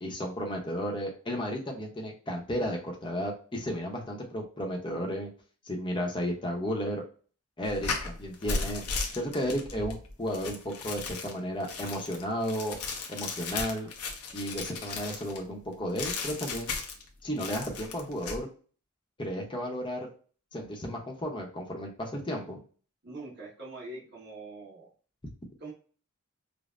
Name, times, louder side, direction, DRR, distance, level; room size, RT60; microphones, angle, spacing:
voice 1, 0.0-5.3 5.6-7.0 7.6-8.8 9.1-12.8 13.1-13.9 14.3-16.8 17.2-18.5 19.2-20.1 20.5-22.6, equal, 20° left, 0 dB, 0.7 m, -33 dB
sound 1, 7.6-15.4 16.0-17.1 17.4-18.4, left 4 dB, 80° left, 0.8 m, -36 dB
voice 2, 23.0-24.9 25.6-25.7, right 2 dB, 50° right, -7 dB, 1.4 m, -43 dB
5.1 x 2.0 x 2.5 m, 0.39 s
head